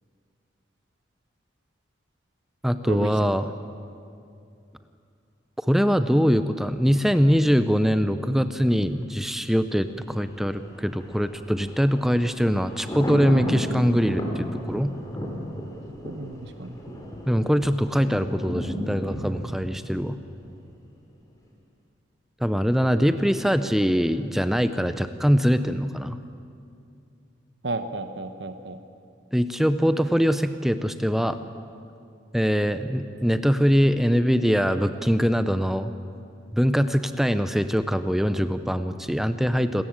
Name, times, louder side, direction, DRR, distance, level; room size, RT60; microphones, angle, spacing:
voice 1, 2.6-3.5 5.6-14.9 17.3-20.2 22.4-26.2 29.3-31.4 32.3-35.9 36.5-39.8, equal, ahead, 11 dB, 0.6 m, -23 dB
Thunder, 9.9-20.9 21.2-21.3, equal, 20° left, 2.8 m, -34 dB
voice 2, 16.0-17.0 27.6-28.8, right 2 dB, 65° right, 9 dB, 1.1 m, -33 dB
27.5 x 14.0 x 8.8 m, 2.4 s
head